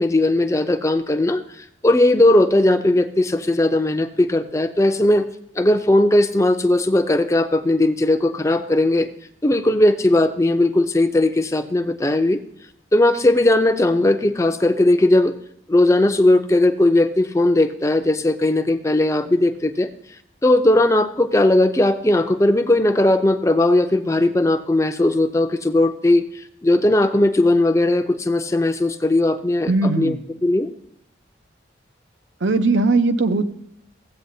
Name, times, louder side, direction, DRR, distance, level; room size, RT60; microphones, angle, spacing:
voice 1, 0.0-1.4 1.8-5.3 5.6-9.1 9.4-12.4 12.9-15.3 15.7-19.9 20.4-26.2 26.6-30.2 30.4-30.7, left 1 dB, 15° left, 8 dB, 0.5 m, -18 dB
voice 2, 29.7-30.3 32.4-33.5, right 3 dB, 85° right, 9 dB, 0.7 m, -19 dB
15.0 x 8.4 x 2.7 m, 0.75 s
head